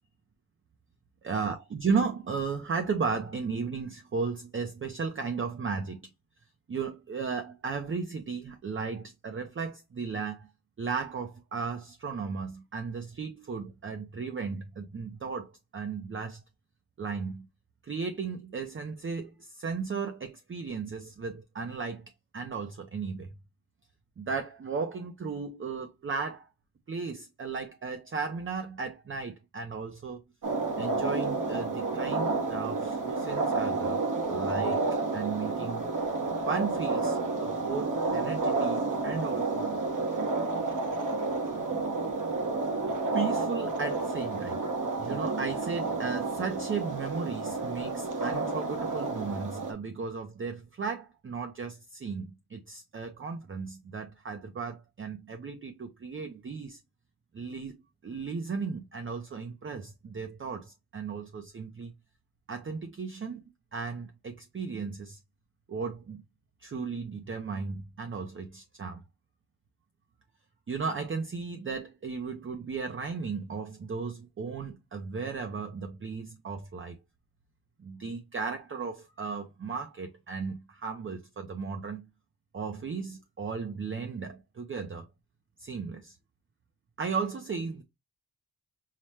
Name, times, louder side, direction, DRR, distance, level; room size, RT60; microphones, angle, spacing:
voice 1, 1.2-6.0 6.7-10.5 10.8-16.4 17.0-17.5 17.8-22.0 22.3-23.3 24.2-26.5 26.9-30.2 30.8-34.0 34.3-35.8 36.4-39.7 40.4-40.7 43.1-44.6 45.0-56.8 57.3-57.7 58.0-61.9 62.5-65.2 65.7-66.2 66.6-69.0 70.7-76.9 77.8-82.1 82.5-85.1 85.6-86.2 87.0-87.8, right 5 dB, 35° right, 0.4 m, -35 dB
sound 1, 30.4-49.7, right 3 dB, 55° right, 0.9 m, -30 dB
5.6 x 2.1 x 3.1 m
wide cardioid pair, 170°, 37 cm